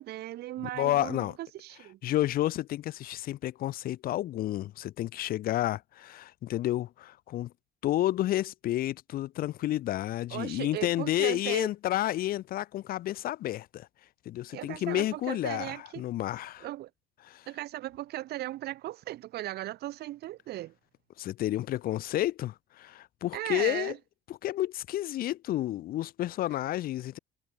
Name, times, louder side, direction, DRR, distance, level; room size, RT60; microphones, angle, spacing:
voice 1, 0.0-2.0 10.3-11.7 14.5-16.0 16.6-16.9 17.5-20.7 23.3-24.0, right 15 dB, 70° right, 1.3 m, -37 dB
voice 2, 0.8-1.4 2.0-7.5 7.8-13.9 14.3-16.7 17.2-17.4 21.2-23.9 24.3-27.2, left 14 dB, 60° left, 0.5 m, -30 dB
cardioid pair, 110°, 17 cm